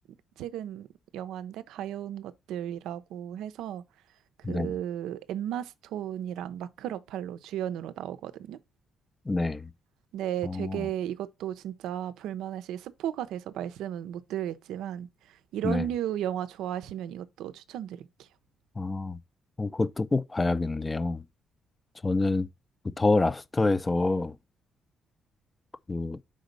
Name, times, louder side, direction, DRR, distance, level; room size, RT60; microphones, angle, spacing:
voice 1, 0.4-0.9 1.1-3.8 4.5-8.6 10.1-18.3, right 11 dB, 85° right, 0.5 m, -35 dB
voice 2, 9.3-9.7 10.4-10.9 15.6-15.8 18.8-19.2 19.6-21.2 22.0-22.5 23.0-24.3 25.9-26.2, left 3 dB, 20° left, 0.4 m, -27 dB
5.1 x 4.0 x 5.1 m
cardioid pair, 90°, 0 cm